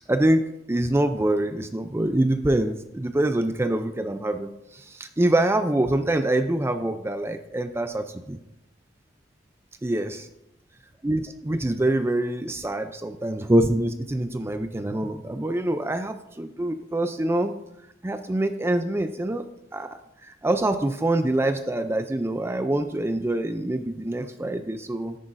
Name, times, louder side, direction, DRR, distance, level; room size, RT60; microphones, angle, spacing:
voice 1, 0.1-8.4 9.8-10.3 11.0-17.5 18.0-19.5 19.7-25.2, right 1 dB, 15° right, 8 dB, 0.4 m, -25 dB
13.5 x 10.0 x 2.6 m, 0.88 s
head